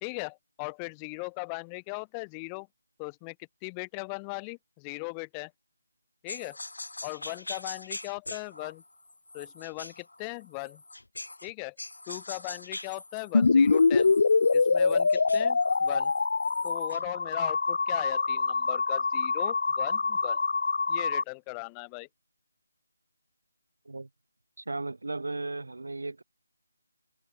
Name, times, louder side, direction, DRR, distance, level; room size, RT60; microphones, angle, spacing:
voice 1, 0.0-2.7 3.0-3.4 3.6-5.5 6.2-6.6 7.0-8.8 9.3-10.8 11.4-11.8 12.1-14.1 14.5-16.1 16.6-20.4 20.9-22.1, left 37 dB, 15° left, 1.1 m, -38 dB
sound 1, 6.3-11.5 11.8-17.1, left 2 dB, 90° left, 4.8 m, -43 dB
sound 2, 13.3-21.2, left 4 dB, 50° left, 0.4 m, -24 dB
voice 2, 24.6-26.2, right 2 dB, 75° right, 2.1 m, -35 dB
figure-of-eight pair, 165°, 0 cm